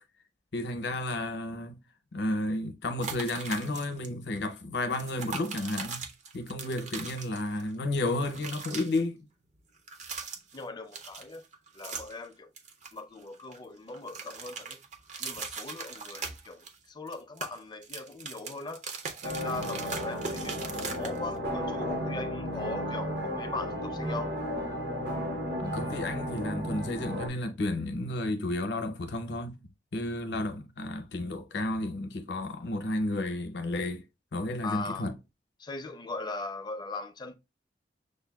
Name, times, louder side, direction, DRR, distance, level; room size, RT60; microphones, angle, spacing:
voice 1, 0.5-1.8 2.1-6.1 6.3-9.3 25.6-29.6 29.9-34.0 34.3-35.2, left 2 dB, 70° left, 0.6 m, -32 dB
sound 1, 3.0-4.1 4.3-4.5 4.9-7.7 8.0-9.0 9.8-10.6 10.9-12.2 12.6-13.6 13.9-16.8 17.1-21.4, right 5 dB, 40° right, 0.5 m, -40 dB
voice 2, 10.5-11.4 11.7-12.5 12.9-14.8 15.2-18.8 19.2-24.3 34.6-35.1 35.6-37.3, left 3 dB, 25° left, 0.4 m, -39 dB
sound 2, 19.2-27.3, equal, 65° right, 0.9 m, -34 dB
6.5 x 2.2 x 2.2 m
head